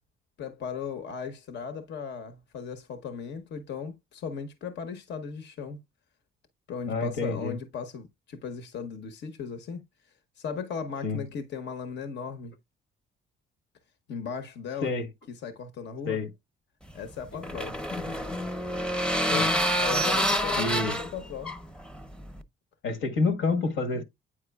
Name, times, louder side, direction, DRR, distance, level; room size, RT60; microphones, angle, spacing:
voice 1, 0.4-5.8 6.7-9.8 10.4-12.5 14.1-14.9 15.3-16.2 16.9-17.8 19.7-21.5, left 6 dB, 65° left, 0.9 m, -37 dB
voice 2, 6.9-7.5 11.0-11.2 14.8-15.1 16.1-16.3 17.3-17.4 17.9-18.5 19.3-19.6 19.9-20.0 20.6-21.0 22.8-24.0, left 3 dB, 80° left, 1.2 m, -29 dB
Metal Door Creaking Closing, 16.9-22.4, equal, 5° left, 0.7 m, -28 dB
8.7 x 4.8 x 2.3 m
cardioid pair, 90°, 20 cm